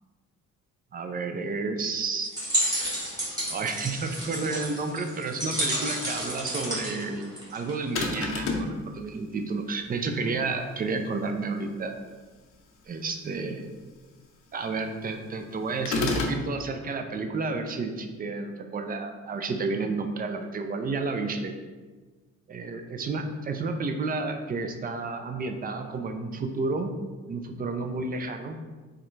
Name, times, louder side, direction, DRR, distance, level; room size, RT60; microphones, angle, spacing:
voice 1, 0.9-2.3 3.5-11.9 12.9-13.7 14.5-21.5 22.5-26.9 27.3-28.6, right 3 dB, 30° right, 6 dB, 0.4 m, -31 dB
sound 1, 2.2-7.9, right 1 dB, 15° right, 1.3 m, -31 dB
sound 2, 8.0-8.8 15.9-16.4, left 3 dB, 50° left, 0.5 m, -28 dB
3.6 x 2.2 x 3.1 m, 1.3 s
cardioid pair, 90°, 30 cm